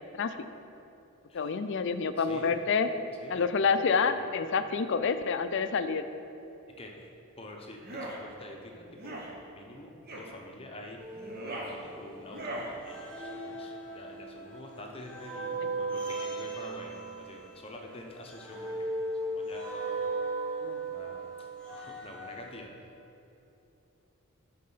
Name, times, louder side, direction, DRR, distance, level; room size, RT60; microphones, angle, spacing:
voice 1, 1.3-2.9 3.3-6.0 20.6-20.8, left 5 dB, 55° left, 10 dB, 0.4 m, -28 dB
voice 2, 2.2-2.6 3.2-3.5 4.0-4.5 6.7-11.0 11.4-12.6 12.8-18.9 19.2-19.8 20.8-22.7, left 1 dB, 25° left, 1 dB, 0.8 m, -47 dB
sound 1, 7.8-8.2 9.0-9.3 10.1-10.3 11.1-11.7 12.3-12.7, right 1 dB, 45° right, 1.0 m, -39 dB
sound 2, 11.0-12.5 12.8-22.5, right 2 dB, 5° left, 1.3 m, -37 dB
10.5 x 4.2 x 5.5 m, 3.0 s
head